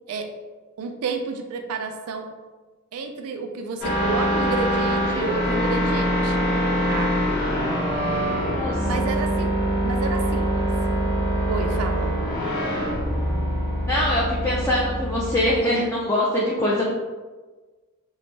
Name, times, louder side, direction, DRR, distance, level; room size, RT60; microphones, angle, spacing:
voice 1, 0.8-2.3 2.9-6.4 6.9-7.1 8.8-9.5 9.8-10.7 11.5-12.1, right 4 dB, 90° right, 5 dB, 0.4 m, -30 dB
sound 1, 3.8-15.6, equal, 55° left, 1.5 m, -24 dB
voice 2, 8.5-8.9 13.9-16.9, left 1 dB, 10° left, -6 dB, 0.4 m, -23 dB
3.0 x 2.0 x 3.2 m, 1.3 s
head